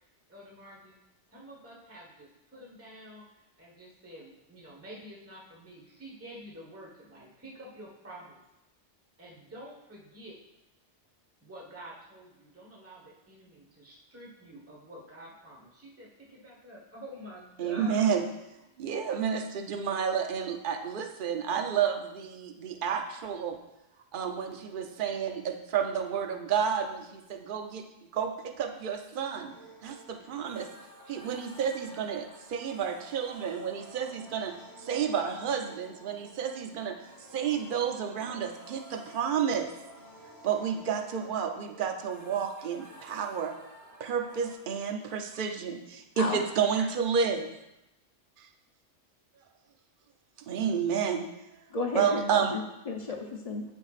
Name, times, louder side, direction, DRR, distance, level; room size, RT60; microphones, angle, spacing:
voice 1, 0.3-1.0 1.3-8.4 9.2-10.4 11.4-18.1, right 1 dB, 10° right, -4 dB, 1.3 m, -48 dB
voice 2, 17.6-18.2 18.8-23.6 24.1-27.8 28.1-29.5 29.8-30.7 31.1-34.5 34.8-39.7 40.4-43.5 44.0-47.5 48.4-48.5 50.5-51.3 51.9-52.6, right 7 dB, 55° right, 5 dB, 0.8 m, -30 dB
sound 1, 29.5-44.6, equal, 80° right, 2.5 m, -52 dB
voice 3, 51.7-53.6, left 3 dB, 40° left, 2 dB, 0.7 m, -33 dB
12.5 x 4.6 x 2.4 m, 0.91 s
omnidirectional pair, 1.2 m